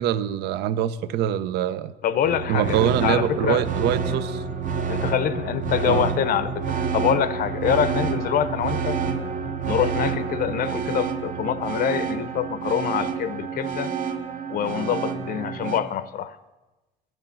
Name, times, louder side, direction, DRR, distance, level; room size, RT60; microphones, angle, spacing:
voice 1, 0.0-1.9 2.5-4.4 5.8-6.1, right 10 dB, 75° right, 15 dB, 0.6 m, -24 dB
voice 2, 2.0-3.6 4.9-9.0 9.6-13.9 14.5-16.4, left 9 dB, 60° left, 15 dB, 0.6 m, -25 dB
sound 1, 2.2-15.8, right 6 dB, 50° right, 1.0 m, -28 dB
9.9 x 7.6 x 8.9 m, 1.1 s
cardioid pair, 110°, 17 cm